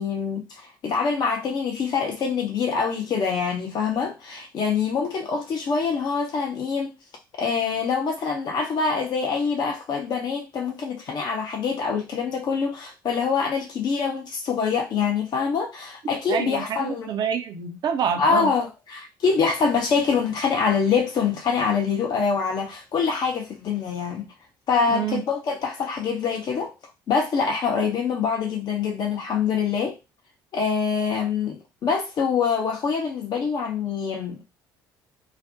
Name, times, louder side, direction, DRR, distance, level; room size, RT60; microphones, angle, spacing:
voice 1, 0.0-6.9 7.4-17.1 18.2-24.3 24.7-26.7 27.1-30.0 30.5-34.4, left 5 dB, 45° left, 0.5 m, -25 dB
voice 2, 16.3-18.5 24.9-25.2, right 8 dB, 45° right, 0.5 m, -27 dB
2.4 x 2.0 x 2.6 m
figure-of-eight pair, 55°, 10 cm